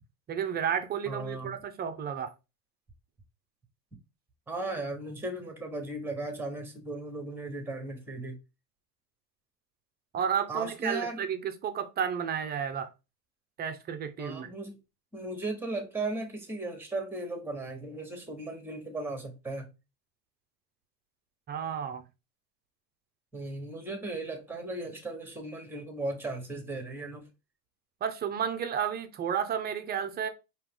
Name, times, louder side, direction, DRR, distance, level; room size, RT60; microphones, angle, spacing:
voice 1, 0.3-2.3 10.1-12.9 13.6-14.5 21.5-22.0 28.0-30.3, right 8 dB, 20° right, 0.5 m, -32 dB
voice 2, 1.1-1.5 4.5-8.4 10.5-11.2 14.2-14.8 15.1-19.7 23.3-27.2, right 2 dB, 5° right, 1.1 m, -36 dB
4.6 x 3.0 x 3.6 m
supercardioid pair, 125°, 48 cm